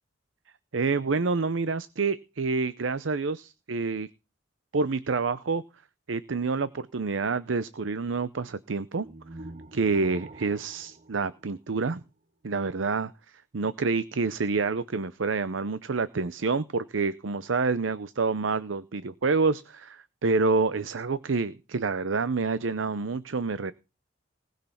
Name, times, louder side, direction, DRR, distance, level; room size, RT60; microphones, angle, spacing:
voice 1, 0.7-4.1 4.7-5.6 6.1-9.1 9.7-12.0 12.4-13.1 13.5-23.7, right 4 dB, 90° right, 15 dB, 0.7 m, -28 dB
sound 1, 8.9-12.1, right 2 dB, 35° right, 0.7 m, -47 dB
19.0 x 6.6 x 5.7 m, 0.31 s
head